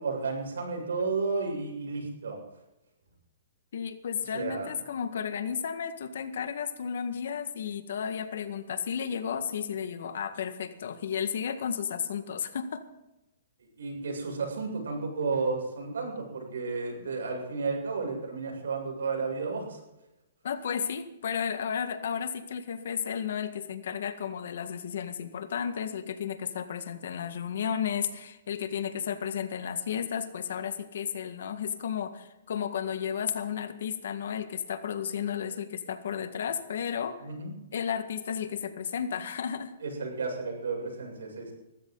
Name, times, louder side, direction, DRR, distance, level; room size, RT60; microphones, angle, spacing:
voice 1, 0.0-2.4 4.3-4.7 13.8-19.8 37.2-37.5 39.8-41.5, right 4 dB, 90° right, 2 dB, 7.5 m, -32 dB
voice 2, 3.7-12.8 20.4-37.2 37.7-39.7, left 7 dB, 70° left, 9 dB, 1.8 m, -33 dB
20.5 x 14.5 x 4.1 m, 0.94 s
hypercardioid pair, 155°, 0 cm